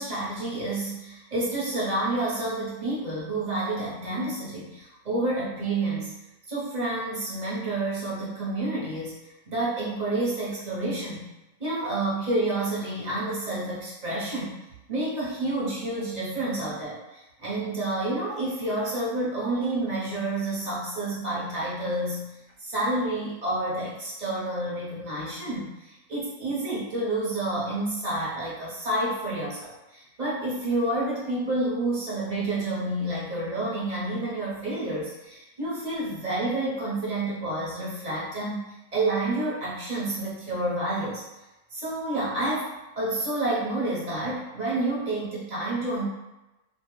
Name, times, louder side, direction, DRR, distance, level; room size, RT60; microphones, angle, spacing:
voice 1, 0.0-6.1 6.5-9.1 9.5-11.3 11.6-14.6 14.9-22.3 22.6-38.6 38.9-41.2 41.7-46.1, right 2 dB, 35° right, -8 dB, 0.8 m, -29 dB
2.5 x 2.1 x 3.0 m, 1.0 s
omnidirectional pair, 1.6 m